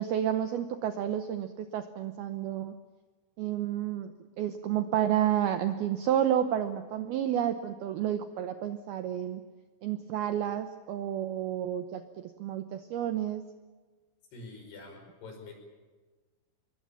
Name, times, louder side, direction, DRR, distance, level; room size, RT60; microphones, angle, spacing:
voice 1, 0.0-2.7 3.4-9.4 9.8-13.4, right 10 dB, 90° right, 9 dB, 2.1 m, -30 dB
voice 2, 14.3-15.5, left 3 dB, 50° left, 3 dB, 7.2 m, -46 dB
26.0 x 22.5 x 7.2 m, 1.3 s
omnidirectional pair, 5.9 m